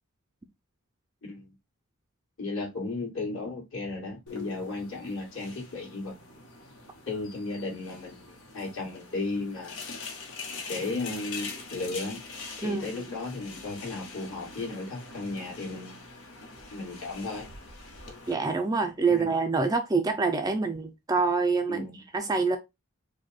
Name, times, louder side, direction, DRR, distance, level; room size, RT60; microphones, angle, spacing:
voice 1, 2.4-6.1 7.1-9.8 10.7-12.2 12.6-16.0 16.7-17.5 19.1-19.3 21.7-22.0, left 3 dB, 60° left, 2.2 m, -35 dB
sound 1, 4.3-18.3, left 4 dB, 85° left, 1.2 m, -43 dB
voice 2, 18.3-22.6, right 4 dB, 15° right, 0.4 m, -26 dB
4.8 x 2.2 x 4.1 m
head